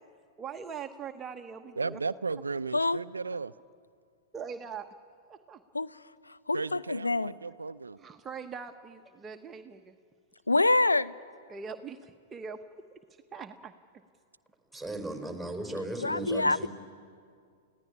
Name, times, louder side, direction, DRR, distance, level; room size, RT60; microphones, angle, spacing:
voice 1, 0.4-2.0 4.3-4.9 5.5-5.6 8.0-9.9 11.5-12.6 13.3-13.7, right 6 dB, 20° right, 5 dB, 1.1 m, -41 dB
voice 2, 1.8-3.5 6.5-8.0 16.1-16.3, right 4 dB, 85° right, 13 dB, 0.5 m, -35 dB
voice 3, 6.5-7.3 10.5-11.1 16.0-16.7, left 2 dB, 90° left, 15 dB, 0.5 m, -26 dB
voice 4, 14.7-16.7, right 1 dB, 5° left, 3 dB, 4.6 m, -36 dB
29.5 x 16.0 x 10.0 m, 2.2 s
figure-of-eight pair, 105°, 0 cm